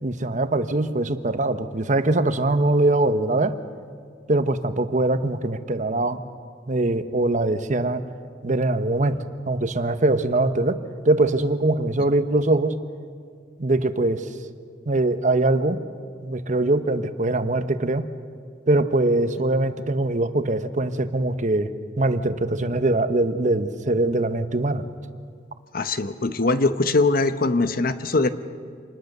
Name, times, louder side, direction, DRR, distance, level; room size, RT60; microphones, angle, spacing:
voice 1, 0.0-3.6 4.3-6.2 6.7-8.0 8.4-9.2 9.5-10.8 11.0-12.8 13.6-14.3 14.9-15.8 16.2-18.0 18.7-24.9, right 2 dB, 45° right, 10 dB, 1.0 m, -22 dB
voice 2, 25.7-28.3, left 3 dB, 55° left, 11 dB, 1.0 m, -21 dB
27.0 x 20.0 x 6.7 m, 2.1 s
head